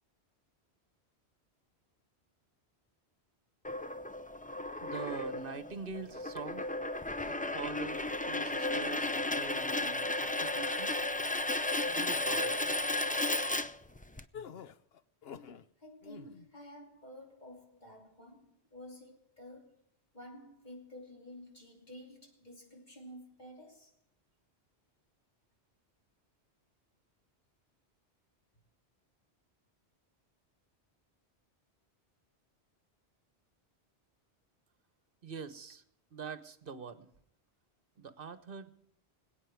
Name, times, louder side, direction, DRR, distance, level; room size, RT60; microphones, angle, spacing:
sound 1, 3.6-14.2, left 2 dB, 15° left, 0.3 m, -34 dB
voice 1, 4.8-6.7 7.3-11.0 11.9-12.8 35.2-35.8 36.1-37.1 38.0-38.7, right 5 dB, 55° right, 1.3 m, -44 dB
sound 2, 14.3-15.7 16.0-16.5, left 7 dB, 65° left, 1.0 m, -47 dB
voice 2, 15.8-19.8 20.1-23.9, left 1 dB, 40° left, 3.3 m, -51 dB
25.0 x 8.8 x 4.7 m
omnidirectional pair, 1.1 m